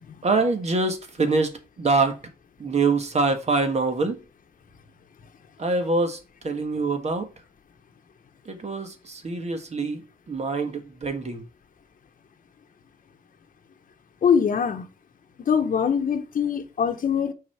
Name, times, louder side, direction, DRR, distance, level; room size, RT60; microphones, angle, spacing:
voice 1, 0.2-2.2 2.6-4.2 5.6-7.3 8.4-10.0 10.3-11.4, right 3 dB, 45° right, 1.5 m, -25 dB
voice 2, 14.2-14.9 15.4-17.3, left 7 dB, 60° left, 0.9 m, -23 dB
6.2 x 4.1 x 5.5 m
wide cardioid pair, 120°, 15 cm